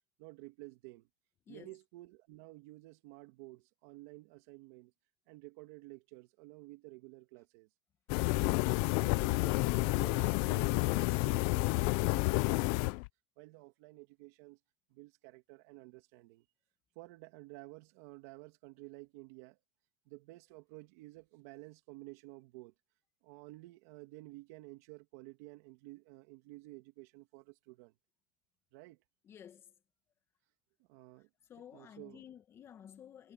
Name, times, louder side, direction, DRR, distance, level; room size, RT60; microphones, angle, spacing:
voice 1, 0.2-1.1 1.5-4.9 5.3-7.7 8.4-13.0 13.4-14.6 14.9-16.4 17.0-19.6 20.1-22.7 23.2-27.9 28.7-29.0 30.9-31.3 31.7-32.2, right 21 dB, 70° right, 2.5 m, -53 dB
sound 1, 8.1-13.1, left 25 dB, 65° left, 0.5 m, -30 dB
voice 2, 29.2-29.7 31.5-33.3, left 9 dB, 30° left, 1.7 m, -53 dB
supercardioid pair, 140°, 8 cm